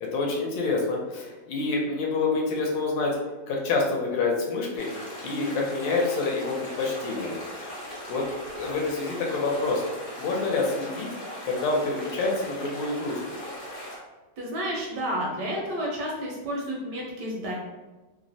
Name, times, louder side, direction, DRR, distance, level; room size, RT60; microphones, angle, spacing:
voice 1, 0.0-3.1 3.5-4.9 5.2-7.4 8.1-8.2 8.5-9.8 10.2-11.1 11.4-13.2, left 3 dB, 75° left, -1 dB, 1.2 m, -27 dB
sound 1, 4.8-14.0, left 1 dB, 60° left, 1.0 m, -39 dB
voice 2, 14.4-17.5, equal, 75° right, -2 dB, 1.1 m, -31 dB
3.1 x 2.0 x 2.5 m, 1.2 s
omnidirectional pair, 2.1 m